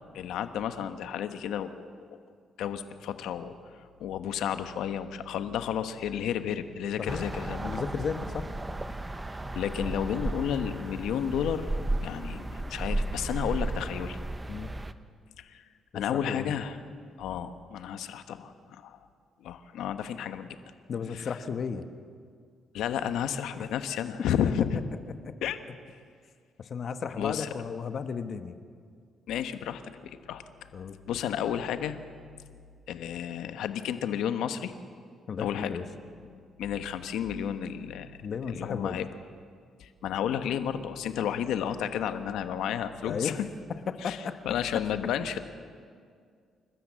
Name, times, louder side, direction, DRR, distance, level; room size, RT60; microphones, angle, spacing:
voice 1, 0.1-2.0 2.6-3.5 4.0-7.8 9.5-11.7 12.0-14.2 15.4-15.6 15.9-16.8 17.2-19.0 19.4-20.5 21.1-21.3 22.7-24.8 25.4-25.6 27.2-27.5 29.3-30.4 31.1-32.0 32.9-34.7 35.4-35.7 36.4-38.1 38.5-39.1 39.8-43.3 44.0-44.2 44.4-45.4, left 9 dB, 85° left, 10 dB, 1.1 m, -32 dB
sound 1, 7.1-14.9, right 2 dB, 15° right, 0.9 m, -34 dB
voice 2, 7.6-8.5 14.5-14.7 15.9-16.6 20.9-21.9 23.6-23.7 25.2-25.3 26.6-28.6 30.7-31.0 35.3-35.8 38.2-39.0 43.1-43.4 43.9-44.4, left 6 dB, 55° left, 9 dB, 1.2 m, -34 dB
29.5 x 13.5 x 7.5 m, 2.1 s
cardioid pair, 90°, 0 cm